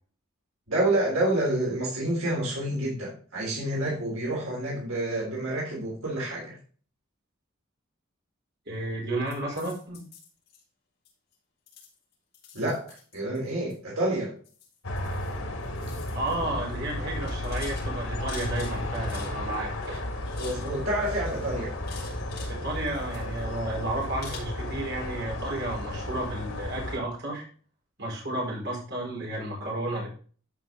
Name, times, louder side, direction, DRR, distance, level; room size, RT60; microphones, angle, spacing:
voice 1, 0.7-6.6 12.5-14.3 20.4-21.7, right 1 dB, 80° right, -4 dB, 3.5 m, -28 dB
voice 2, 8.7-10.0 16.1-20.1 22.5-27.4 28.0-30.1, right 1 dB, 55° right, -2 dB, 4.6 m, -32 dB
sound 1, 9.3-10.6 11.1-11.3 11.7-13.8 14.4-15.4 15.6-16.4 16.7-16.9 17.2-19.6 19.8-20.7 21.0-22.6 22.9-23.6 24.2-24.4, left 6 dB, 50° left, 5.3 m, -47 dB
sound 2, 14.8-27.0, left 1 dB, 90° left, 2.3 m, -33 dB
13.5 x 5.3 x 3.9 m, 0.42 s
head